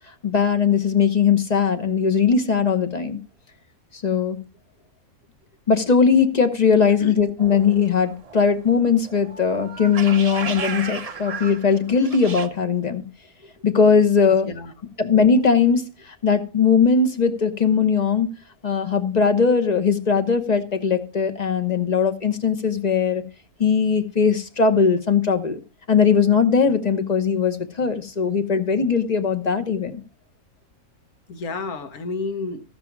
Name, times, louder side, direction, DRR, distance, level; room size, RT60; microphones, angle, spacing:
voice 1, 0.2-3.2 4.0-4.4 5.7-13.0 13.6-14.5 15.0-18.3 18.6-23.2 23.6-25.6 25.9-30.0, left 6 dB, 35° left, 0.9 m, -19 dB
sound 1, 7.4-12.5, right 5 dB, 35° right, 0.6 m, -35 dB
voice 2, 14.3-14.7 31.3-32.6, left 3 dB, 80° left, 1.7 m, -31 dB
14.5 x 5.3 x 5.9 m
omnidirectional pair, 1.5 m